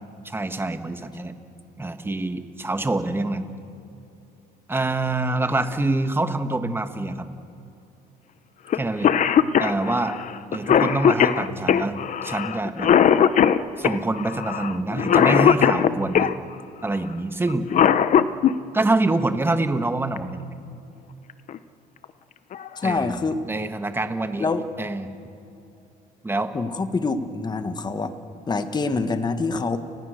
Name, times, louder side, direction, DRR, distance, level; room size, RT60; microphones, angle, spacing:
voice 1, 0.2-1.3 1.8-3.5 4.7-7.3 8.7-9.1 9.6-10.1 10.5-12.9 13.8-16.3 16.8-17.7 18.7-20.5 22.8-23.2 23.5-24.4 24.8-25.1 26.2-26.5, right 2 dB, 15° right, 8 dB, 1.6 m, -25 dB
Cough, 8.7-8.8 9.0-16.3 17.5-18.5 20.2-20.3 21.3-21.6 22.0-22.1 22.5-23.0, left 8 dB, 50° left, 0.9 m, -19 dB
voice 2, 22.8-23.4 24.4-24.6 26.5-28.1 28.5-29.8, left 3 dB, 25° left, 8 dB, 1.6 m, -25 dB
30.0 x 20.5 x 6.7 m, 2.9 s
cardioid pair, 110°, 17 cm